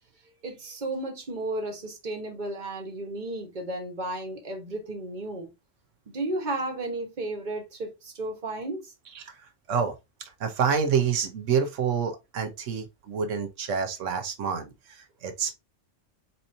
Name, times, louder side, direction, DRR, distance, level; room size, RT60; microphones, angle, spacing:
voice 1, 0.4-5.5 6.1-8.9, right 2 dB, 40° right, 1.4 m, -33 dB
voice 2, 10.4-15.6, right 6 dB, 85° right, 1.2 m, -28 dB
4.4 x 4.1 x 2.7 m
omnidirectional pair, 1.2 m